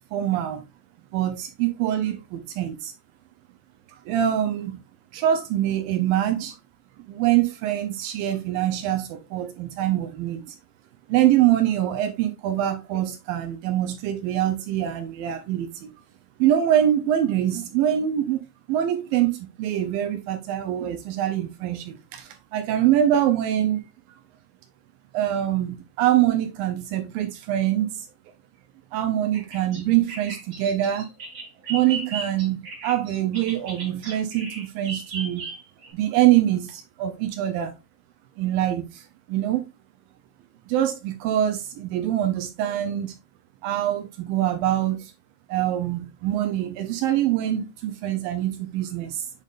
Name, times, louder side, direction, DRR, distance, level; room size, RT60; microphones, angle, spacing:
voice 1, 0.1-0.6 1.1-2.9 3.9-4.8 5.1-6.6 7.0-10.6 11.1-15.9 16.4-18.4 18.7-23.8 25.1-28.1 28.9-31.1 31.7-35.5 35.9-37.7 38.4-39.6 40.7-43.2 43.6-45.1 45.5-49.3, right 12 dB, 80° right, 2.2 m, -24 dB
Bird vocalization bird call bird song, 29.3-35.9, right 3 dB, 35° right, 2.2 m, -36 dB
8.2 x 5.1 x 2.4 m
omnidirectional pair, 4.5 m